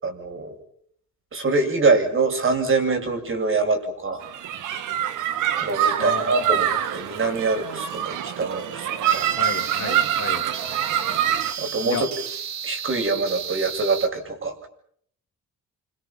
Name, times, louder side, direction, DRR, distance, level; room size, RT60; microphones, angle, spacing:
voice 1, 0.0-0.6 1.3-4.3 5.6-9.3 11.6-12.1 12.6-14.7, right 3 dB, 45° right, 6 dB, 7.6 m, -24 dB
sound 1, 4.2-11.5, right 10 dB, 85° right, 2.3 m, -25 dB
voice 2, 6.0-6.8 9.4-10.4 11.8-12.1, left 9 dB, 65° left, 7 dB, 2.9 m, -33 dB
sound 2, 9.0-14.1, right 8 dB, 65° right, 2.6 m, -33 dB
28.0 x 26.5 x 6.0 m, 0.65 s
cardioid pair, 90°, 30 cm